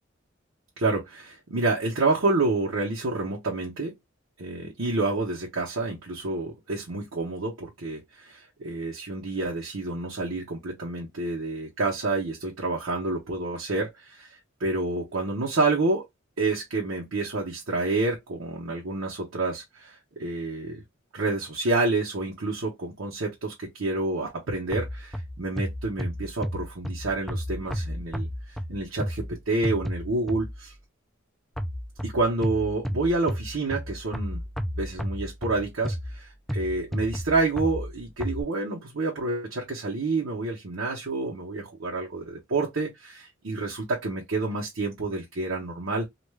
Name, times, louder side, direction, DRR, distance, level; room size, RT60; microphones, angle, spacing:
voice 1, 0.8-4.0 4.4-14.3 14.6-16.1 16.4-20.8 21.1-28.3 28.7-30.7 32.0-34.4 34.8-46.1, right 3 dB, 80° right, 0.9 m, -28 dB
sound 1, 24.7-30.8 31.6-38.4, equal, ahead, 0.3 m, -33 dB
2.4 x 2.3 x 3.2 m
head